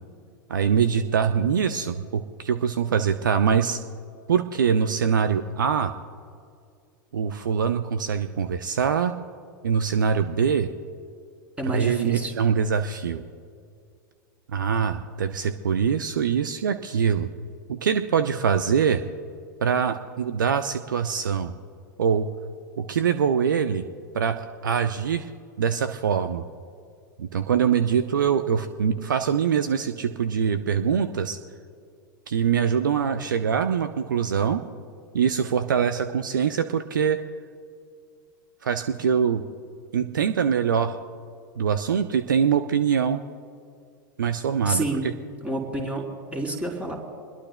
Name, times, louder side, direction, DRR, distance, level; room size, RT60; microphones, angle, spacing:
voice 1, 0.5-3.8 4.3-5.9 7.1-9.1 9.6-10.7 11.7-13.2 14.5-17.3 17.7-19.0 19.6-21.5 22.0-22.3 22.8-23.9 24.1-25.3 25.6-26.4 27.2-31.4 32.3-34.6 35.1-37.2 38.6-39.4 39.9-41.0 41.6-43.2 44.2-44.8, right 7 dB, 65° right, 10 dB, 0.7 m, -23 dB
voice 2, 11.6-12.3 44.7-45.1 45.4-46.0 46.3-46.9, right 2 dB, 10° right, 0 dB, 3.9 m, -28 dB
27.0 x 21.5 x 2.2 m, 2.3 s
figure-of-eight pair, 90°, 11 cm